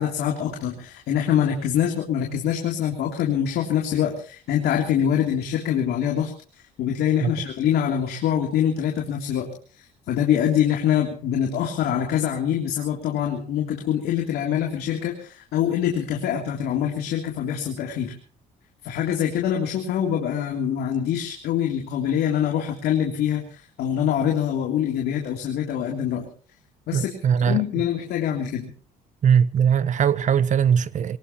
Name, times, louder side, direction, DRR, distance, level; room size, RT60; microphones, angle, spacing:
voice 1, 0.0-18.1 18.8-26.3 26.9-27.1 27.5-28.7, left 9 dB, 75° left, 3.4 m, -24 dB
voice 2, 26.9-27.6 29.2-31.2, right 8 dB, 45° right, 1.2 m, -20 dB
24.5 x 18.5 x 3.1 m
cardioid pair, 110°, 17 cm